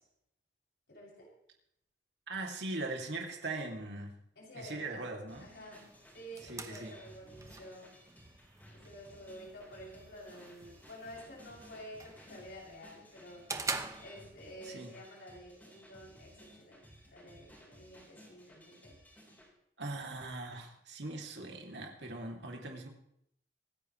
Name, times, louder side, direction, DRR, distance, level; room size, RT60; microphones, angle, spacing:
voice 1, 0.9-1.3 4.4-5.0 5.4-7.9 8.7-13.4 13.7-18.9 22.6-22.8, equal, 70° left, -4 dB, 7.1 m, -50 dB
voice 2, 2.3-4.2 4.5-5.5 6.4-6.9 14.6-14.9 19.8-22.9, right 2 dB, 80° right, 1 dB, 2.7 m, -40 dB
sound 1, 5.3-19.5, equal, 10° left, 4.7 m, -58 dB
sound 2, 5.7-14.7, right 4 dB, 20° right, 0.9 m, -46 dB
25.5 x 10.5 x 3.2 m, 0.73 s
head